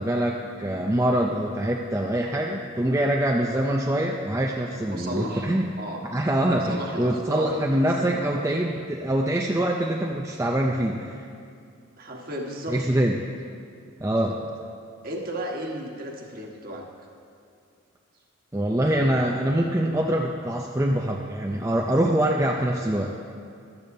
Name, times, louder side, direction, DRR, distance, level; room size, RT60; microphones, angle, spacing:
voice 1, 0.0-5.7 6.1-11.2 12.7-13.1 14.0-14.4 18.5-23.1, right 1 dB, 15° right, -1 dB, 0.4 m, -24 dB
voice 2, 4.9-5.5 5.8-6.0 6.5-8.5 12.0-13.0 14.3-14.4 15.0-16.8 22.3-22.4, right 1 dB, 45° right, 0 dB, 1.4 m, -34 dB
14.0 x 12.0 x 2.7 m, 2.4 s
head